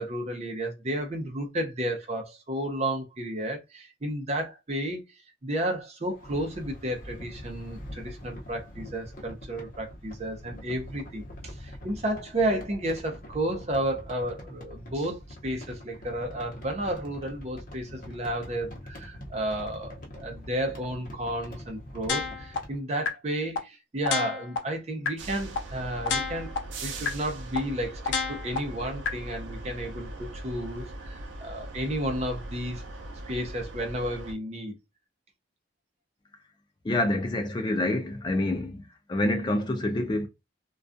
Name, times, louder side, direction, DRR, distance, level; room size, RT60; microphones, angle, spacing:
voice 1, 0.0-5.0 5.4-26.5 26.8-32.8 33.3-34.8, right 1 dB, 35° right, 0.6 m, -32 dB
sound 1, 6.1-22.8, equal, 45° left, 0.7 m, -44 dB
sound 2, 22.1-22.6 23.1-23.2 23.6-23.7 24.1-24.6 25.1-25.2 25.6-25.7 26.1-26.6 27.1-27.2 27.6-27.7 28.1-28.6 29.1-29.2, left 6 dB, 75° left, 0.5 m, -28 dB
sound 3, 25.2-34.3, right 2 dB, 80° right, 0.5 m, -40 dB
voice 2, 36.8-38.8 39.1-40.3, left 1 dB, 25° left, 0.3 m, -27 dB
2.3 x 2.3 x 2.5 m
head